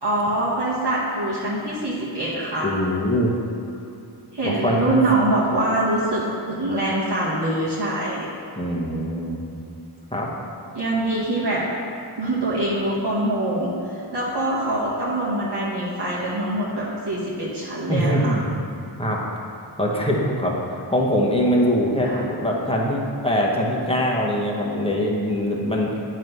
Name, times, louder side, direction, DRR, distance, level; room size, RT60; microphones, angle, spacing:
voice 1, 0.0-2.7 4.3-6.2 6.5-8.3 10.7-11.7 12.2-18.3 22.0-22.2, right 1 dB, 55° right, -8 dB, 1.2 m, -24 dB
voice 2, 2.6-3.3 4.4-5.0 8.6-9.4 10.1-10.3 17.9-18.5 19.0-19.2 19.8-25.9, equal, 10° left, -3 dB, 1.0 m, -22 dB
9.0 x 3.1 x 5.4 m, 2.6 s
wide cardioid pair, 50°, 49 cm